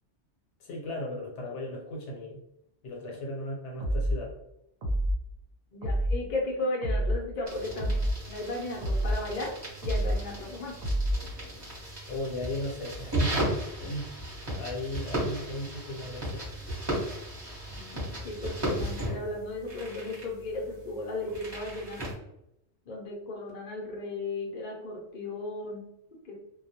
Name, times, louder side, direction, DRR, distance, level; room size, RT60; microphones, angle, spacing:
voice 1, 0.6-2.4 2.8-4.3 12.1-14.1 14.5-16.4, left 1 dB, 75° left, -1 dB, 0.9 m, -36 dB
sound 1, 3.8-4.2 4.8-5.2 5.8-6.2 6.8-7.2 7.8-8.2 8.8-9.2 9.8-10.2 10.8-11.2, equal, 60° right, 0.9 m, -27 dB
voice 2, 5.7-8.0 8.3-9.5 9.8-10.7 17.7-18.0 18.2-22.1 22.9-25.8 26.3-26.4, left 2 dB, 55° left, -2 dB, 0.6 m, -35 dB
sound 2, 7.5-22.1, right 1 dB, 25° right, 0.8 m, -36 dB
2.2 x 2.0 x 2.7 m, 0.82 s
omnidirectional pair, 1.2 m